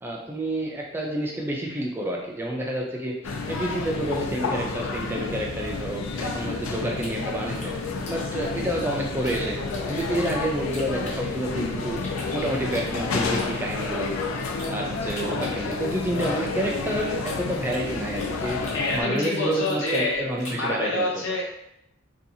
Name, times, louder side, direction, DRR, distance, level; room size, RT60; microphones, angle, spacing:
voice 1, 0.0-7.7 8.1-9.6 9.9-12.0 12.3-14.1 14.6-21.2, right 1 dB, 10° right, -2 dB, 0.3 m, -29 dB
sound 1, 3.2-19.0, left 3 dB, 85° left, 0.4 m, -30 dB
sound 2, 7.0-9.4 9.7-11.6 12.0-14.7 15.1-18.4 18.6-20.7, left 2 dB, 35° left, 0.6 m, -43 dB
voice 2, 18.7-21.5, left 1 dB, 65° left, -3 dB, 0.8 m, -27 dB
2.6 x 2.3 x 2.7 m, 0.79 s
head